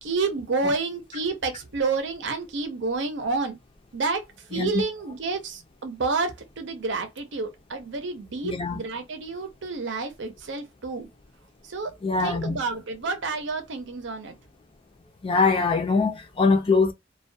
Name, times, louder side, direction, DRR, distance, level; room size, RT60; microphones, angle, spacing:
voice 1, 0.0-3.6 3.9-4.2 4.5-11.1 11.7-11.9 12.2-14.3, right 4 dB, 70° right, 0.6 m, -29 dB
voice 2, 4.5-4.8 8.4-8.8 12.0-12.6 15.2-16.9, left 4 dB, 30° left, 0.5 m, -23 dB
2.3 x 2.2 x 2.5 m
head